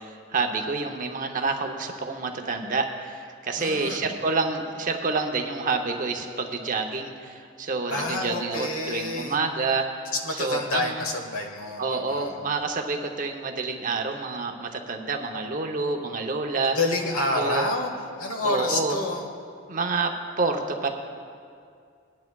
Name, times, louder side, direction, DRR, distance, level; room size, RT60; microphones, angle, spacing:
voice 1, 0.0-10.1 10.4-11.0 11.8-16.8 17.3-17.6 18.4-18.9 19.7-20.9, right 3 dB, 40° right, 4 dB, 0.8 m, -28 dB
voice 2, 3.6-4.1 7.9-9.4 10.2-12.4 16.6-17.9 18.2-19.2, left 2 dB, 80° left, 3 dB, 1.3 m, -28 dB
20.0 x 10.5 x 2.3 m, 2.3 s
head